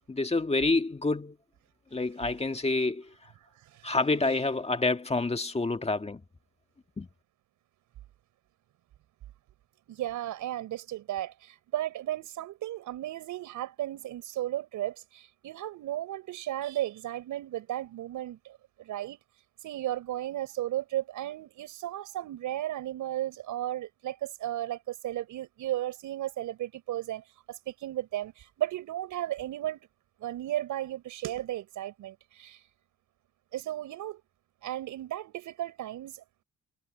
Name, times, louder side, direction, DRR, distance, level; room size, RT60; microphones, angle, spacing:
voice 1, 0.1-1.4 1.9-3.1 3.8-6.2 7.0-7.1, left 3 dB, 20° left, 1.9 m, -28 dB
voice 2, 9.9-19.2 19.6-29.9 30.2-32.6 33.5-34.2 34.6-36.2, right 13 dB, 80° right, 6.1 m, -35 dB
cardioid pair, 90°, 30 cm